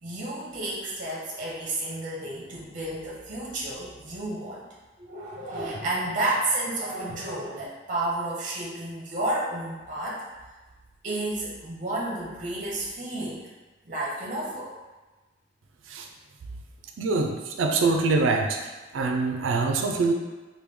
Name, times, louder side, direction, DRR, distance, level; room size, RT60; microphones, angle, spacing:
voice 1, 0.0-4.6 5.0-10.2 11.0-13.4 13.8-14.7, right 2 dB, 40° right, -5 dB, 0.7 m, -31 dB
voice 2, 17.0-20.1, right 3 dB, 85° right, 3 dB, 0.4 m, -24 dB
3.1 x 2.2 x 3.4 m, 1.2 s
head